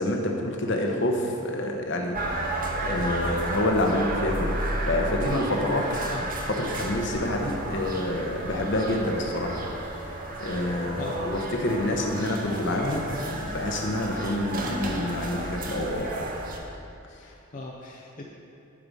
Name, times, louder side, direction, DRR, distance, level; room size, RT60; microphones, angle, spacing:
voice 1, 0.0-4.6 4.8-6.3 6.6-9.6 10.1-16.2, left 1 dB, 60° left, 2 dB, 1.0 m, -28 dB
sound 1, 2.1-16.6, right 1 dB, 45° right, 0.8 m, -32 dB
voice 2, 10.4-11.2 12.2-12.3 17.2-18.2, left 2 dB, 40° left, -1 dB, 0.6 m, -41 dB
10.5 x 4.9 x 5.4 m, 2.6 s
head